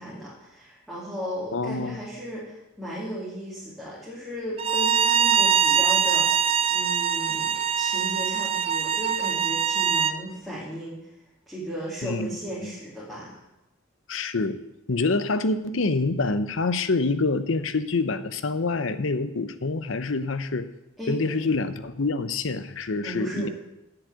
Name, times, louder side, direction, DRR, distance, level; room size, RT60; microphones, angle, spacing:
voice 1, 0.0-11.0 11.5-13.3 21.0-21.5 22.9-23.5, equal, ahead, -10 dB, 2.6 m, -35 dB
voice 2, 1.5-2.0 12.0-12.4 12.6-12.7 14.1-14.5 14.9-20.7 21.1-23.5, left 3 dB, 75° left, 12 dB, 0.7 m, -26 dB
Bowed string instrument, 4.6-10.2, right 8 dB, 30° right, 0.5 m, -23 dB
7.9 x 7.3 x 8.0 m, 0.88 s
head